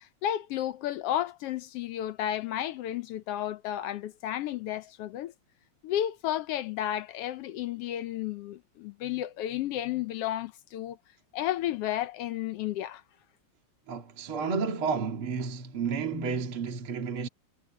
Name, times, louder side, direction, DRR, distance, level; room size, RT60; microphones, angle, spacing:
voice 1, 0.0-5.3 5.8-11.0 11.3-13.0, left 12 dB, 75° left, 1.4 m, -32 dB
voice 2, 13.9-17.3, right 5 dB, 50° right, 2.8 m, -31 dB
omnidirectional pair, 3.3 m